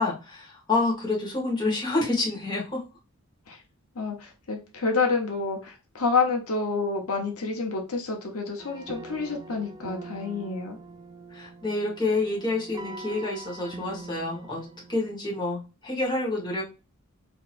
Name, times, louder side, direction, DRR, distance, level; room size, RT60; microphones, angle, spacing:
voice 1, 0.0-2.8 11.3-16.6, left 2 dB, 20° left, -4 dB, 1.3 m, -28 dB
voice 2, 3.9-10.8, left 4 dB, 75° left, 1 dB, 0.9 m, -28 dB
sound 1, 8.6-15.2, right 2 dB, 15° right, 0.3 m, -43 dB
4.4 x 2.8 x 2.5 m, 0.31 s
head